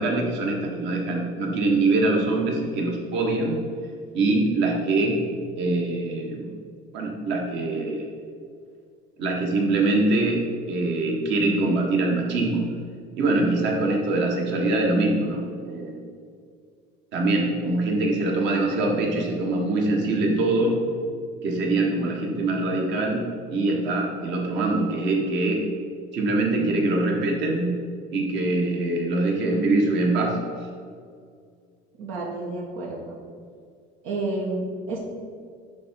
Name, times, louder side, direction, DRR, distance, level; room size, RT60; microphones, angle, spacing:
voice 1, 0.0-3.6 4.1-5.2 5.6-6.5 6.9-8.1 9.2-10.4 10.7-12.6 13.2-16.0 17.1-20.8 21.4-23.2 23.5-25.6 26.1-27.7 28.1-30.4, right 2 dB, 65° right, 0 dB, 1.5 m, -23 dB
voice 2, 32.0-33.2 34.0-35.0, right 2 dB, 85° right, -2 dB, 1.3 m, -30 dB
10.5 x 3.8 x 4.6 m, 2.2 s
cardioid pair, 120°, 20 cm